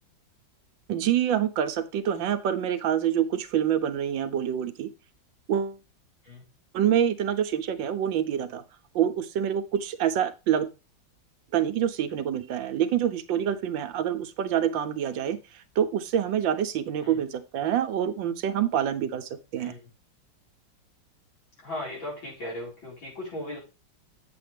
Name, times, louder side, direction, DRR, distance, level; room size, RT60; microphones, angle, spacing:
voice 1, 0.9-4.9 5.5-5.8 6.7-8.6 8.9-10.7 11.5-19.7, right 9 dB, 75° right, 8 dB, 1.5 m, -26 dB
voice 2, 19.6-19.9 21.6-23.6, left 1 dB, 80° left, -4 dB, 5.3 m, -37 dB
8.6 x 7.5 x 3.4 m, 0.29 s
omnidirectional pair, 2.1 m